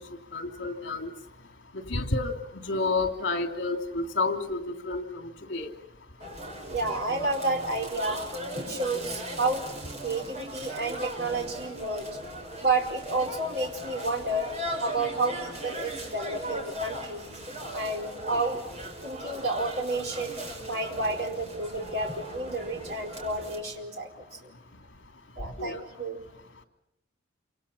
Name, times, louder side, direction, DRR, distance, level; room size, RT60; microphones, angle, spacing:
voice 1, 0.3-1.1 1.9-2.3 2.6-5.7 25.6-25.8, left 3 dB, 70° left, 6 dB, 3.1 m, -30 dB
sound 1, 6.2-23.6, right 1 dB, 35° right, 5.6 m, -38 dB
voice 2, 6.7-8.2 8.5-9.7 10.0-12.2 12.6-14.5 14.8-17.4 17.7-18.6 19.0-20.4 20.7-24.5 25.4-26.2, right 2 dB, 55° right, 3 dB, 4.6 m, -30 dB
28.5 x 26.0 x 5.7 m, 0.88 s
head